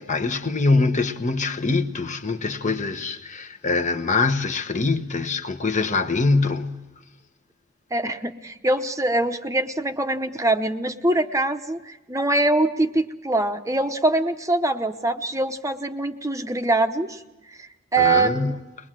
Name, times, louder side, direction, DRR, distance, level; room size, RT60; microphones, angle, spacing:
voice 1, 0.0-6.9 18.0-18.5, left 3 dB, 40° left, 1.1 m, -23 dB
voice 2, 7.9-17.2 17.6-18.6, right 2 dB, 15° right, 0.9 m, -23 dB
22.0 x 21.5 x 7.5 m
head